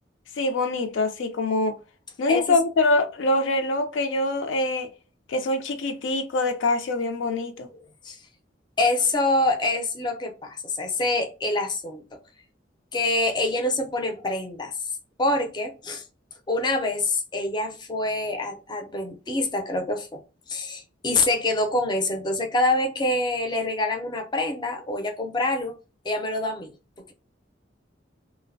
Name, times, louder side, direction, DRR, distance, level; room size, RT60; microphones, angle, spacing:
voice 1, 0.4-1.7 2.2-4.9 5.3-7.7, left 2 dB, 85° left, 0.4 m, -24 dB
voice 2, 8.8-12.0 12.9-14.7 15.2-16.0 16.5-20.2 20.5-25.7 26.0-26.7, left 2 dB, 25° left, 0.4 m, -25 dB
2.5 x 2.0 x 2.5 m
head